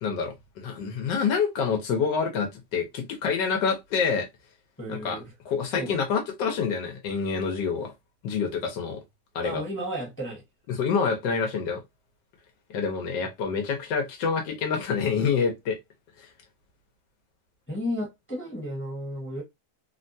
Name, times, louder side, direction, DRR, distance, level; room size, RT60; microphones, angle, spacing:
voice 1, 0.0-4.3 4.9-5.2 5.5-7.9 8.2-9.0 9.3-9.6 10.7-11.8 12.7-15.8 16.2-16.3, left 5 dB, 85° left, 1.4 m, -27 dB
voice 2, 4.8-5.3 5.8-6.0 9.4-10.4 17.7-19.4, equal, 10° left, 0.7 m, -33 dB
3.4 x 2.2 x 2.6 m
omnidirectional pair, 1.8 m